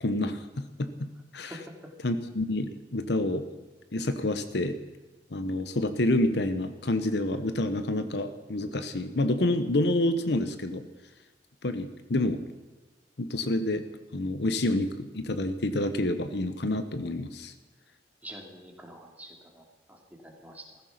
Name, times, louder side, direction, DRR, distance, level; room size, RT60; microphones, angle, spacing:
voice 1, 0.0-1.6 2.0-3.4 3.9-4.8 5.3-10.9 11.6-12.4 13.2-13.8 14.1-17.5, left 1 dB, 70° left, 10 dB, 1.0 m, -28 dB
voice 2, 18.2-20.8, right 1 dB, 10° right, 1 dB, 2.6 m, -46 dB
15.5 x 14.5 x 5.9 m, 1.2 s
head